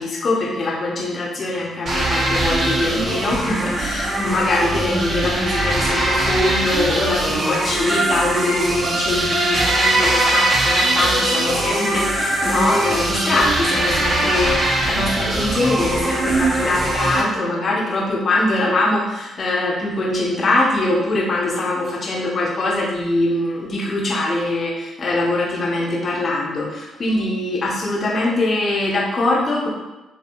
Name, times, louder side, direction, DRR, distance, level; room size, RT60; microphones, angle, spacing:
voice 1, 0.0-29.7, left 2 dB, 50° left, -3 dB, 0.8 m, -22 dB
sound 1, 1.8-17.2, right 2 dB, 50° right, 0.7 m, -21 dB
2.8 x 2.8 x 2.6 m, 1.0 s
hypercardioid pair, 45°, 0 cm